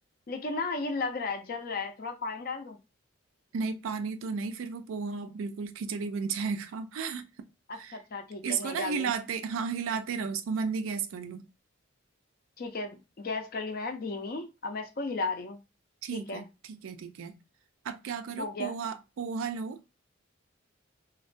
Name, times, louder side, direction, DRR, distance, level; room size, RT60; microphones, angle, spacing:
voice 1, 0.3-2.8 7.7-9.1 12.6-15.6 16.1-16.5 18.4-18.8, left 3 dB, 45° left, 0.5 m, -35 dB
voice 2, 3.5-7.3 7.8-8.0 8.4-11.4 16.0-17.3 17.8-19.8, right 5 dB, 80° right, 0.4 m, -33 dB
2.2 x 2.2 x 2.5 m
head